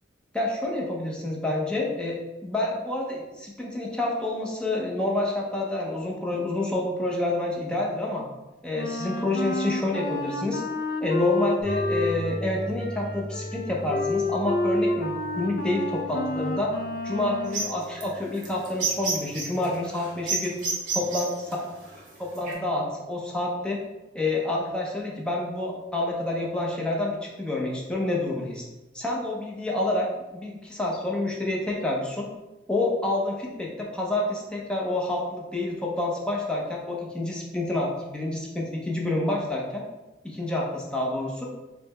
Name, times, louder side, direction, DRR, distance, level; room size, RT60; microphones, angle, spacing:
voice 1, 0.3-8.2 8.6-10.6 11.0-16.7 17.0-20.5 20.9-21.6 22.2-23.8 24.1-28.6 28.9-30.1 30.3-32.3 32.7-39.8 40.2-41.5, left 2 dB, 5° left, -3 dB, 0.6 m, -28 dB
Wind instrument woodwind instrument, 8.7-17.6, left 2 dB, 50° left, 0.4 m, -30 dB
sound 1, 11.6-19.3, equal, 30° right, 1.3 m, -39 dB
sound 2, 17.5-22.5, right 4 dB, 45° right, 1.0 m, -31 dB
3.8 x 2.1 x 4.0 m, 1.1 s
head